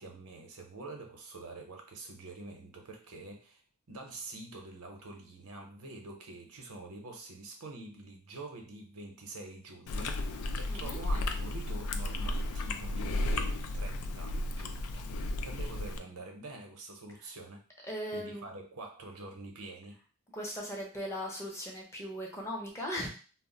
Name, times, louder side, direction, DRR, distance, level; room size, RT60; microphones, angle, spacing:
voice 1, 0.0-3.6 3.9-17.6 18.1-20.0, right 2 dB, 80° right, 3 dB, 0.7 m, -46 dB
Chewing mastication, 9.9-16.0, left 2 dB, 75° left, 0.3 m, -34 dB
voice 2, 10.7-11.0 17.8-18.4 20.3-23.1, equal, 10° left, -1 dB, 0.6 m, -38 dB
2.3 x 2.1 x 3.7 m, 0.37 s
head